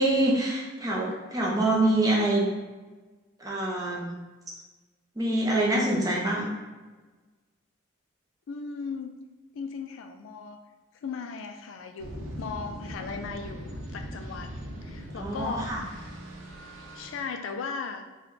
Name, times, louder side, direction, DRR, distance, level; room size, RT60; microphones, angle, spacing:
voice 1, 0.0-2.4 3.4-4.1 5.2-6.5 15.1-15.8, right 1 dB, 15° right, -3 dB, 0.6 m, -25 dB
voice 2, 8.5-9.2 9.5-10.6 10.9-14.5 14.8-16.2 16.7-18.0, left 5 dB, 70° left, 6 dB, 0.3 m, -37 dB
sound 1, 12.0-17.2, equal, 80° right, 0.6 m, -40 dB
3.8 x 2.2 x 3.2 m, 1.3 s
head